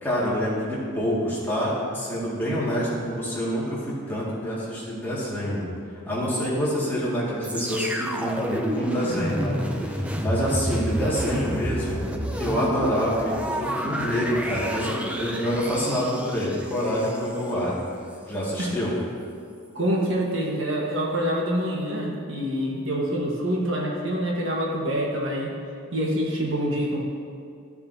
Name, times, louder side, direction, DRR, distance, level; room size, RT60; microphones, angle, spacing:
voice 1, 0.0-5.7 6.1-17.8 18.3-18.9, equal, 10° left, -8 dB, 2.0 m, -27 dB
sound 1, 7.4-17.5 18.1-18.2, equal, 5° right, 0.5 m, -30 dB
voice 2, 19.7-25.5 25.9-27.0, equal, 65° right, -2 dB, 1.4 m, -26 dB
13.5 x 7.0 x 2.8 m, 2.4 s
head